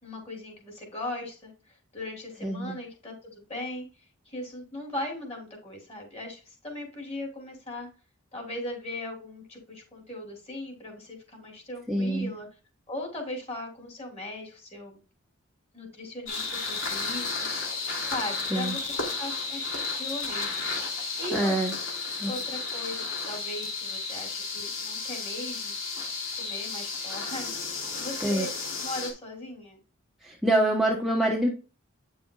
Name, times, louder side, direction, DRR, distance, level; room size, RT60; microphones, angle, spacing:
voice 1, 0.0-3.9 4.2-7.9 8.3-12.5 12.9-15.0 15.7-17.4 18.1-18.8 19.2-20.5 21.2-21.5 22.2-25.8 26.4-27.7 27.9-28.5 28.8-29.8, left 1 dB, 30° left, 1 dB, 3.2 m, -38 dB
voice 2, 2.4-2.8 11.9-12.3 18.5-18.8 21.3-21.7 22.2-22.3 28.2-28.5 30.2-31.5, right 1 dB, ahead, -2 dB, 1.0 m, -25 dB
sound 1, 16.3-29.1, left 4 dB, 65° left, 2.9 m, -33 dB
9.4 x 6.9 x 2.3 m, 0.34 s
head